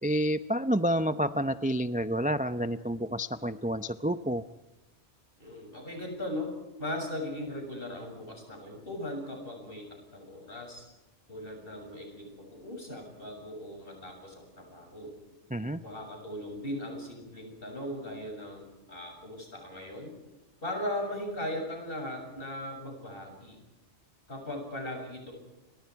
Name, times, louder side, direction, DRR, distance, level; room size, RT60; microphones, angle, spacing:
voice 1, 0.0-4.4 15.5-15.8, equal, 10° right, 11 dB, 0.5 m, -29 dB
voice 2, 5.4-10.9 11.3-15.2 15.8-20.2 20.6-23.6 24.3-25.3, left 1 dB, 50° left, 2 dB, 7.5 m, -38 dB
29.0 x 24.5 x 4.8 m, 1.0 s
omnidirectional pair, 1.2 m